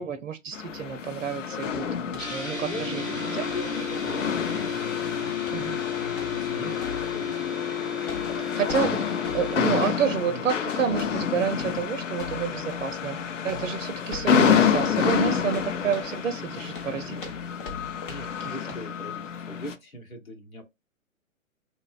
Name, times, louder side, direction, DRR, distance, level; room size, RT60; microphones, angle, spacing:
voice 1, 0.0-3.0 3.3-3.4 5.5-5.8 8.4-9.0 9.3-17.3 18.4-18.5, right 7 dB, 65° right, 0.6 m, -29 dB
sound 1, 0.5-19.7, left 7 dB, 65° left, 0.6 m, -29 dB
sound 2, 2.1-2.5 2.7-4.8 5.4-5.8 6.1-7.5 8.0-10.0 10.9-11.2 11.5-11.8 12.1-12.9 13.5-16.1 16.7-18.4 18.7-18.8, left 4 dB, 40° left, 0.8 m, -43 dB
sound 3, 2.2-9.8, left 6 dB, 15° left, 0.6 m, -32 dB
voice 2, 2.4-4.5 5.0-9.3 10.3-10.5 11.6-11.9 13.4-13.7 18.1-20.6, equal, 85° left, 1.2 m, -42 dB
3.1 x 2.0 x 2.3 m
figure-of-eight pair, 125°, 41 cm